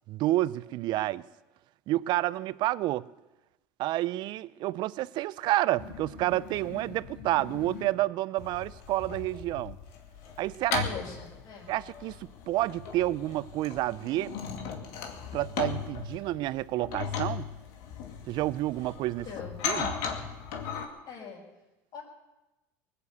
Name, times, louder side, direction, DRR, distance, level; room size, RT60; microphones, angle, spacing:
voice 1, 0.1-1.3 1.9-3.0 3.8-9.8 10.4-10.8 11.7-14.3 15.3-17.4 18.3-19.3 19.6-19.9, right 16 dB, 55° right, 0.5 m, -29 dB
sound 1, 5.8-7.9 8.4-20.9, left 6 dB, 75° left, 2.3 m, -38 dB
voice 2, 10.8-11.8 16.2-16.3 19.2-19.7 21.1-21.4 21.9-22.0, left 6 dB, 55° left, 5.0 m, -42 dB
20.0 x 8.1 x 8.1 m
supercardioid pair, 100°, 9 cm